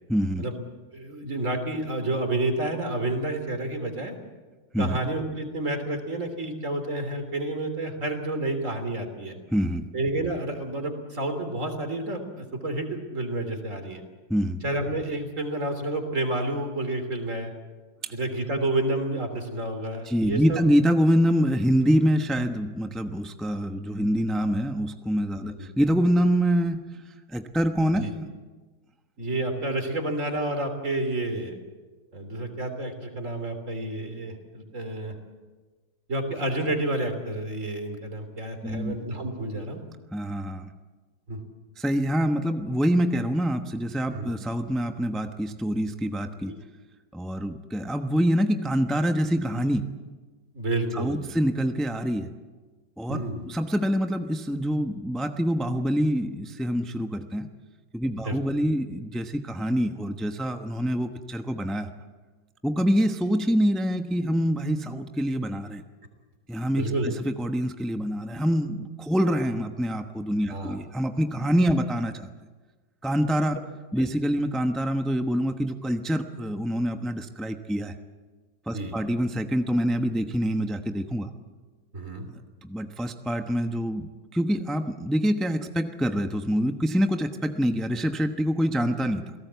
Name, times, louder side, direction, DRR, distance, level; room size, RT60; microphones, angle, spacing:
voice 1, 0.1-0.4 4.7-5.0 9.5-9.9 14.3-14.6 18.0-18.1 20.0-26.8 27.3-28.3 38.6-39.0 40.1-40.7 41.8-46.5 47.1-49.9 50.9-52.3 53.0-57.5 57.9-61.9 62.6-65.8 66.5-72.3 73.0-73.6 73.9-77.9 78.7-81.3 82.6-89.3, equal, ahead, 6 dB, 0.4 m, -25 dB
voice 2, 0.9-4.1 4.8-9.4 9.9-14.0 14.6-17.5 18.1-20.6 25.5-25.7 28.0-28.1 29.2-31.6 32.1-35.2 36.1-39.8 41.3-41.4 44.1-44.3 50.5-51.3 53.1-53.5 58.1-58.4 66.8-67.1 70.5-70.8 74.0-74.1 78.7-79.0 81.9-82.3, right 2 dB, 35° right, 7 dB, 3.6 m, -30 dB
28.0 x 18.0 x 8.2 m, 1.3 s
omnidirectional pair, 2.2 m